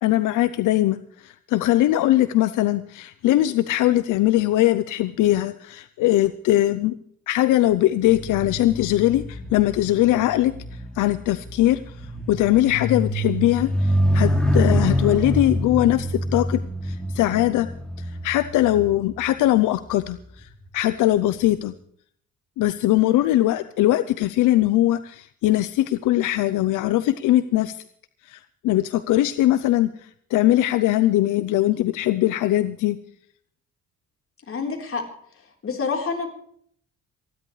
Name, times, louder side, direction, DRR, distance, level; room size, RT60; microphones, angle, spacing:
voice 1, 0.0-7.0 7.3-17.7 18.0-21.7 22.6-27.8 28.2-33.0, left 15 dB, 85° left, 13 dB, 0.6 m, -21 dB
sound 1, 8.1-19.7 20.4-20.7, equal, 5° left, 3.1 m, -26 dB
voice 2, 34.5-35.0 35.6-36.3, left 5 dB, 45° left, 2 dB, 3.9 m, -27 dB
27.5 x 11.0 x 3.2 m, 0.63 s
cardioid pair, 90°, 30 cm